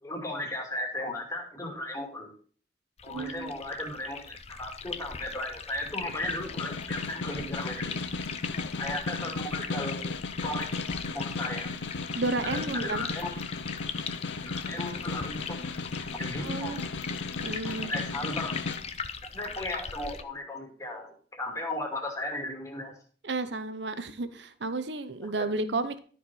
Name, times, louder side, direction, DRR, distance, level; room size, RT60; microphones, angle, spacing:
voice 1, 0.0-2.3 3.0-8.1 8.8-10.7 11.1-11.7 12.4-13.4 14.4-15.7 16.1-17.2 17.6-18.5 19.3-23.0 25.2-25.5, left 1 dB, 15° left, 1 dB, 2.4 m, -36 dB
sound 1, 3.0-20.2, left 6 dB, 35° left, 0.7 m, -40 dB
voice 2, 3.1-3.5 12.1-13.1 16.4-16.8 17.4-17.9 23.2-26.0, right 3 dB, 80° right, 12 dB, 0.8 m, -32 dB
Snare drum, 6.1-18.8, left 3 dB, 90° left, 0.6 m, -35 dB
12.5 x 4.7 x 5.4 m, 0.43 s
head